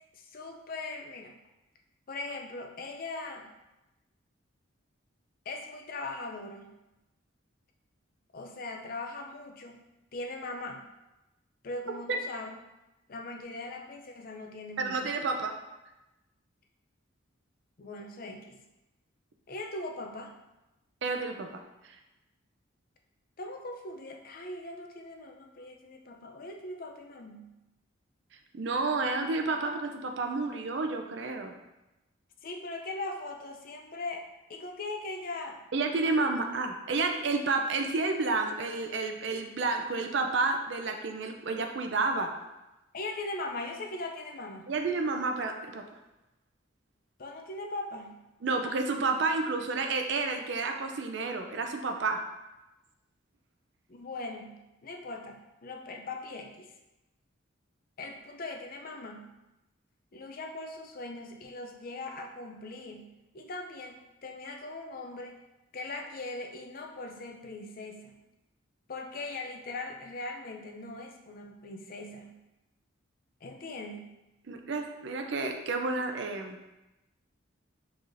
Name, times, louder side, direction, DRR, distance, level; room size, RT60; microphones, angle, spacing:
voice 1, 0.2-1.4 2.1-3.5 5.5-6.7 8.3-9.8 10.1-10.8 11.6-12.6 13.1-15.1 17.8-18.6 19.5-20.3 23.4-27.5 32.4-35.6 42.9-44.7 47.2-48.2 53.9-56.7 58.0-59.3 60.1-65.4 65.7-68.2 68.9-72.4 73.4-74.2, left 2 dB, 45° left, 3 dB, 0.5 m, -40 dB
voice 2, 14.8-15.5 21.0-22.0 28.5-31.5 35.7-42.3 44.7-45.8 48.4-52.2 74.5-76.6, right 3 dB, 60° right, 5 dB, 0.5 m, -30 dB
4.6 x 4.0 x 2.6 m, 0.99 s
head